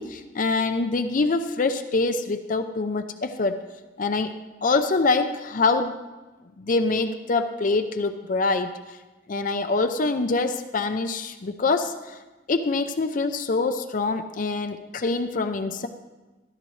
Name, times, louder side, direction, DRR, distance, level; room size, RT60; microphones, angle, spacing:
voice 1, 0.0-3.6 4.0-4.4 4.6-6.0 6.6-8.7 9.3-11.9 12.5-15.9, left 3 dB, 50° left, 8 dB, 0.5 m, -25 dB
13.5 x 13.0 x 3.2 m, 1.2 s
head